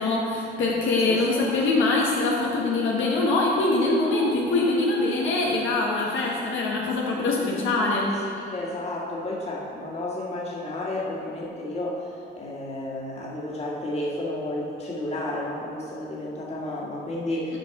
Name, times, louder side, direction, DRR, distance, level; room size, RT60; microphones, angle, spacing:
voice 1, 0.0-8.1, left 2 dB, 80° left, -3 dB, 1.2 m, -23 dB
voice 2, 0.9-1.5 8.3-17.6, left 1 dB, 30° left, -4 dB, 1.8 m, -32 dB
8.2 x 5.2 x 4.7 m, 2.5 s
cardioid pair, 90°, 20 cm